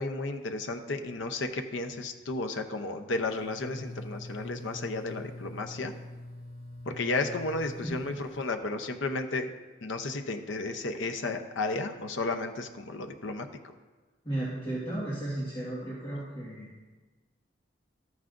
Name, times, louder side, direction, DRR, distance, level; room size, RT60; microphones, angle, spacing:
voice 1, 0.0-5.9 6.9-9.5 9.8-13.7, left 3 dB, 85° left, 6 dB, 0.8 m, -33 dB
sound 1, 3.2-8.5, left 1 dB, 55° right, 1.1 m, -44 dB
voice 2, 7.8-8.2 14.2-16.7, right 1 dB, 25° left, -8 dB, 1.6 m, -34 dB
13.5 x 9.4 x 2.6 m, 1.3 s
head